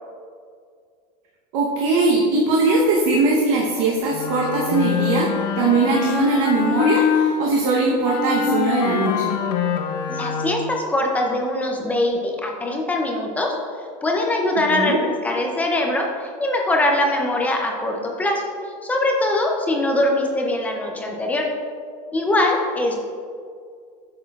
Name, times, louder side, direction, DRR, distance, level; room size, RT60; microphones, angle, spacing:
voice 1, 1.5-9.4 14.7-15.0, right 3 dB, 55° right, -2 dB, 0.9 m, -20 dB
Wind instrument woodwind instrument, 4.1-7.4 8.0-10.8, left 7 dB, 85° left, 0.8 m, -23 dB
voice 2, 10.1-13.6 14.0-18.5 18.8-21.6 22.1-22.9, left 1 dB, 5° left, 0 dB, 0.4 m, -22 dB
8.4 x 6.5 x 2.3 m, 2.2 s
supercardioid pair, 175°, 20 cm